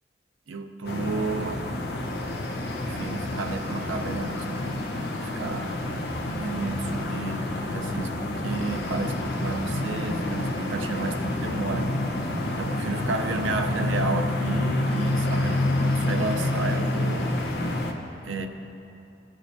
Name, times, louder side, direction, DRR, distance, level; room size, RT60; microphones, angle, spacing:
voice 1, 0.5-1.6 2.8-4.8 5.2-5.8 6.3-12.0 12.6-17.4 18.2-18.5, right 3 dB, 80° right, 6 dB, 0.6 m, -32 dB
sound 1, 0.8-17.9, left 1 dB, 55° left, 0.8 m, -28 dB
18.0 x 6.4 x 2.7 m, 2.9 s
head